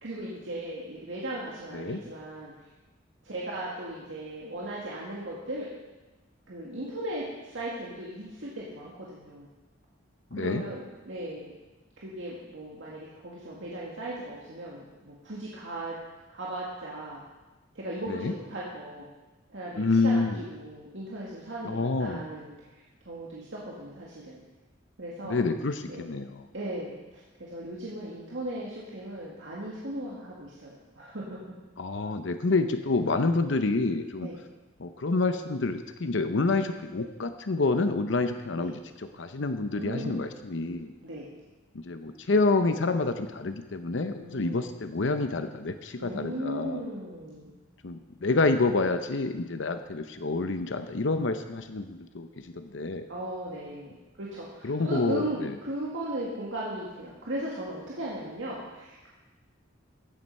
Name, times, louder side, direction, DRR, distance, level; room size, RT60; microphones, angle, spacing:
voice 1, 0.0-2.5 3.2-5.7 6.5-9.5 10.4-11.5 12.0-16.0 16.3-17.3 17.8-19.1 19.5-24.4 25.0-25.4 25.9-26.1 26.5-31.4 34.2-34.4 38.5-38.7 39.7-40.3 41.0-41.3 44.1-44.7 46.0-47.5 53.1-59.1, right 1 dB, 75° right, -5 dB, 2.0 m, -37 dB
voice 2, 10.3-10.6 18.1-18.3 19.8-20.4 21.6-22.2 25.2-26.4 31.8-34.3 34.8-40.9 41.7-46.8 47.8-52.3 52.6-53.1 54.6-55.5, left 3 dB, 75° left, 8 dB, 0.7 m, -28 dB
14.5 x 7.7 x 5.4 m, 1.2 s
head